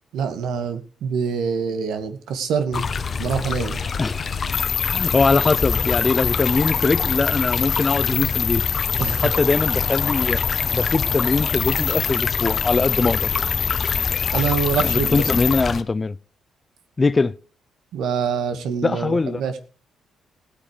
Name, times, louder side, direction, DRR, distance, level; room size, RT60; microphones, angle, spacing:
voice 1, 0.1-2.9 3.2-3.8 9.0-9.3 14.3-15.3 17.9-19.6, right 6 dB, 80° right, 2.1 m, -25 dB
sound 1, 2.7-15.8, left 5 dB, 40° left, 1.0 m, -26 dB
sound 2, 4.5-15.6, left 8 dB, 60° left, 1.6 m, -26 dB
voice 2, 4.9-8.7 9.2-10.4 10.7-13.3 14.8-16.2 17.0-17.3 18.8-19.4, left 3 dB, 25° left, 0.6 m, -21 dB
16.5 x 8.8 x 5.1 m
cardioid pair, 90°, 0 cm